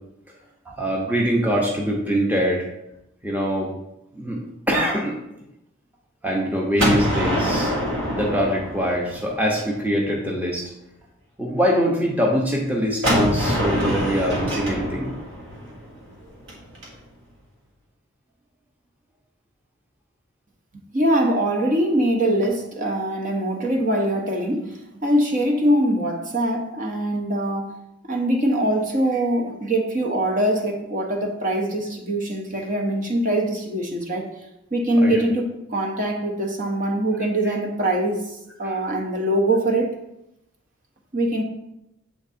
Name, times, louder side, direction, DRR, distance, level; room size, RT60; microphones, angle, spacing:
voice 1, 0.7-2.7 3.2-3.7 4.1-4.4 4.7-5.1 6.2-7.7 8.1-10.6 11.4-15.1 35.0-35.2 38.6-38.8, equal, 10° right, -2 dB, 0.7 m, -23 dB
Gunshot gunfire, 6.8-9.6 13.0-16.9, equal, 60° right, 1.6 m, -25 dB
voice 2, 20.9-27.7 28.1-34.3 34.7-39.9 41.1-41.4, right 1 dB, 35° right, 1 dB, 0.8 m, -23 dB
7.2 x 3.5 x 4.2 m, 0.87 s
head